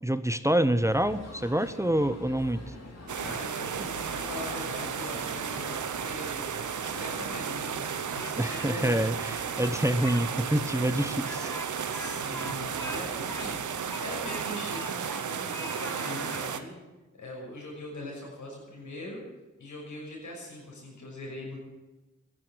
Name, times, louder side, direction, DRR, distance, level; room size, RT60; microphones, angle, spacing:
voice 1, 0.0-2.6 8.4-11.5, right 1 dB, 10° right, 12 dB, 0.9 m, -27 dB
sound 1, 0.8-14.4, left 2 dB, 60° left, 3.8 m, -46 dB
sound 2, 3.1-16.6, right 7 dB, 90° right, 1.0 m, -34 dB
voice 2, 3.2-6.4 6.8-9.3 11.9-13.6 14.0-16.7 17.1-19.2 19.6-21.6, left 1 dB, 90° left, -2 dB, 6.2 m, -41 dB
Speech, 8.1-8.9 9.2-10.2 10.5-10.6 11.1-15.2 15.5-16.4, left 1 dB, 10° left, 1.5 m, -42 dB
14.5 x 11.0 x 9.1 m, 1.2 s
cardioid pair, 50°, 29 cm